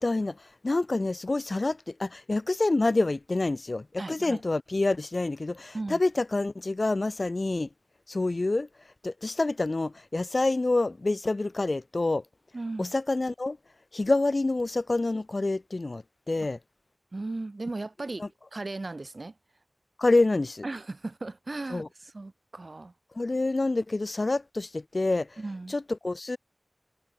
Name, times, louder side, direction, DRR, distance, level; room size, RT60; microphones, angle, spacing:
voice 1, 0.0-7.7 8.1-8.7 9.0-12.2 12.8-13.6 13.9-16.6 18.2-18.3 20.0-20.6 21.7-21.9 23.1-25.4 25.7-26.4, left 2 dB, 55° left, 0.6 m, -27 dB
voice 2, 4.0-4.4 5.7-6.0 12.5-12.9 17.1-19.4 20.6-22.9 25.4-25.8, right 2 dB, 60° right, 1.5 m, -36 dB
wide cardioid pair, 65°, 0 cm